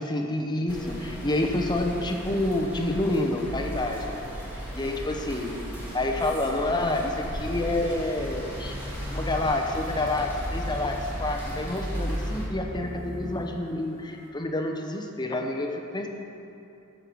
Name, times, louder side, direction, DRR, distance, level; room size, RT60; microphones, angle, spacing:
voice 1, 0.0-4.2 4.7-5.5 5.9-8.8 9.1-16.1, left 2 dB, 20° left, 3 dB, 0.9 m, -28 dB
sound 1, 0.7-12.5, equal, 10° right, 2.6 m, -35 dB
sound 2, 5.9-14.3, equal, 25° right, 1.6 m, -42 dB
14.5 x 6.7 x 4.7 m, 2.8 s
head